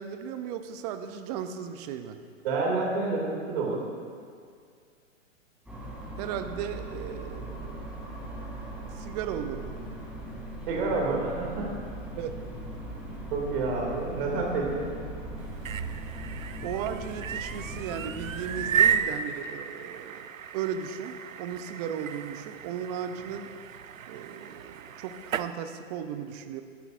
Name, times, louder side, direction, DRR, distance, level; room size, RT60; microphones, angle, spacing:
voice 1, 0.0-2.2 6.2-7.9 8.9-9.7 12.2-12.3 16.6-23.5 24.1-26.6, right 8 dB, 30° right, 9 dB, 0.7 m, -36 dB
voice 2, 2.4-3.8 10.7-11.7 13.3-14.9, right 3 dB, 45° right, -2 dB, 2.7 m, -28 dB
sound 1, 5.7-19.0, right 1 dB, 5° right, 2.8 m, -39 dB
sound 2, 15.4-25.5, right 8 dB, 80° right, 0.6 m, -33 dB
18.5 x 12.0 x 2.6 m, 2.2 s
figure-of-eight pair, 115°, 39 cm